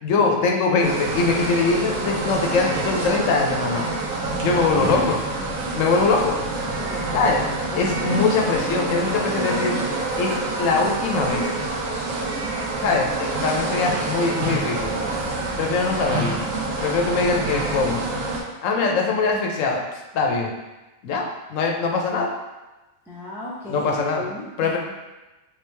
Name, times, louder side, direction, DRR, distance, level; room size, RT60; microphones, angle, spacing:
voice 1, 0.0-3.9 4.4-5.2 5.7-6.4 7.1-7.4 7.7-9.7 10.2-11.4 12.8-14.9 15.6-16.4 16.8-18.0 18.6-19.8 20.1-20.5 21.0-22.3 23.7-24.2 24.6-24.8, left 4 dB, 75° left, 1 dB, 1.0 m, -22 dB
sound 1, 0.8-18.4, right 2 dB, 75° right, 1.2 m, -27 dB
voice 2, 6.8-8.2 13.1-13.3 16.6-17.0 18.8-19.1 23.1-24.8, left 1 dB, 5° right, -6 dB, 0.5 m, -37 dB
3.6 x 3.0 x 3.3 m, 1.1 s
omnidirectional pair, 1.4 m